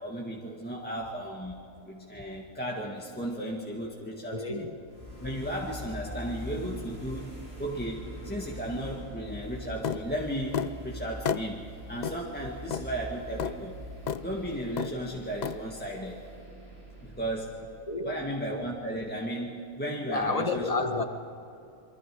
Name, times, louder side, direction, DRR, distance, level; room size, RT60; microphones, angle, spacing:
voice 1, 0.0-1.6 1.8-4.7 5.2-7.3 7.6-13.7 14.2-16.2 17.0-17.6 18.0-20.7, right 1 dB, 5° left, 1.8 m, -35 dB
voice 2, 4.1-4.8 17.9-18.2 20.1-21.0, left 3 dB, 30° left, 1.4 m, -30 dB
sound 1, 4.8-18.7, equal, 60° right, 6.9 m, -43 dB
sound 2, 9.8-10.0 10.5-10.7 11.3-11.5 12.0-12.2 12.7-12.9 13.4-13.5 14.1-14.2 14.8-15.0 15.4-15.6, left 7 dB, 55° left, 0.5 m, -30 dB
28.5 x 23.5 x 4.8 m
omnidirectional pair, 1.4 m